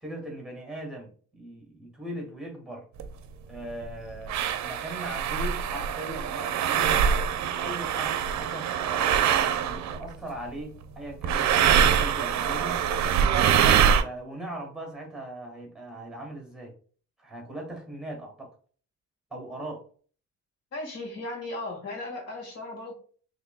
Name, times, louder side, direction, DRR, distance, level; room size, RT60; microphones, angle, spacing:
voice 1, 0.0-2.9 3.5-6.9 7.3-12.8 14.0-16.7 17.2-18.5 19.3-19.8, right 1 dB, ahead, 0 dB, 1.7 m, -39 dB
sound 1, 3.0-3.1 3.8-3.9 4.3-10.1 11.2-14.0, right 8 dB, 65° right, 0.5 m, -24 dB
voice 2, 20.7-22.9, left 2 dB, 55° left, 0 dB, 1.8 m, -36 dB
5.7 x 3.1 x 2.2 m, 0.43 s
cardioid pair, 90°, 30 cm